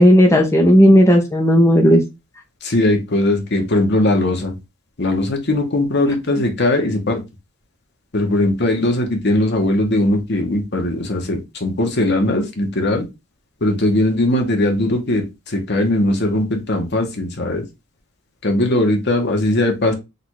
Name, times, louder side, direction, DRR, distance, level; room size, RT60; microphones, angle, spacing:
voice 1, 0.0-2.0, equal, 15° left, 0 dB, 0.7 m, -12 dB
voice 2, 2.6-4.6 5.0-7.2 8.1-13.1 13.6-17.6 18.4-19.9, left 1 dB, 55° left, 3 dB, 1.2 m, -19 dB
3.9 x 2.6 x 4.6 m, 0.24 s
head